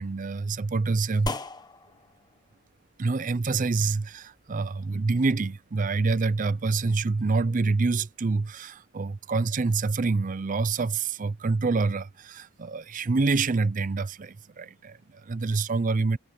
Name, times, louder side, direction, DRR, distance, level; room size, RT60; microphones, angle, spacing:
voice 1, 0.0-1.3 3.0-16.2, right 3 dB, 35° right, 0.5 m, -26 dB
sound 1, 1.3-10.0, left 2 dB, 20° left, 1.1 m, -44 dB
head